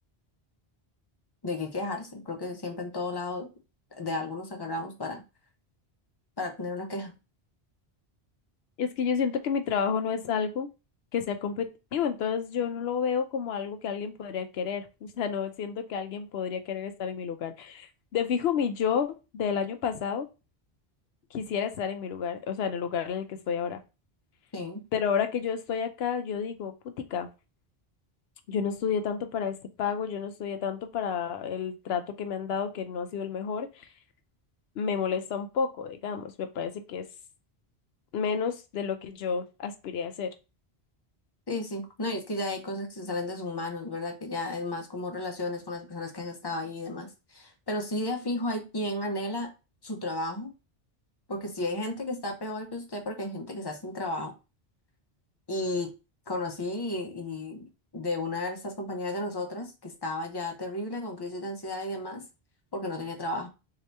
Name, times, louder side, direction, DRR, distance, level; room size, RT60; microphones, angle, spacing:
voice 1, 1.4-3.5 4.0-5.2 6.4-7.1 24.5-24.8 41.5-49.5 49.8-50.5 51.3-54.3 55.5-55.9 56.3-57.7 57.9-62.2 62.7-63.5, left 2 dB, 25° left, 4 dB, 0.7 m, -33 dB
voice 2, 8.8-10.7 11.1-20.3 21.3-23.8 24.9-27.3 28.5-33.9 34.8-37.0 38.1-40.3, left 7 dB, 80° left, 8 dB, 0.8 m, -30 dB
3.9 x 2.9 x 3.2 m, 0.29 s
omnidirectional pair, 1.1 m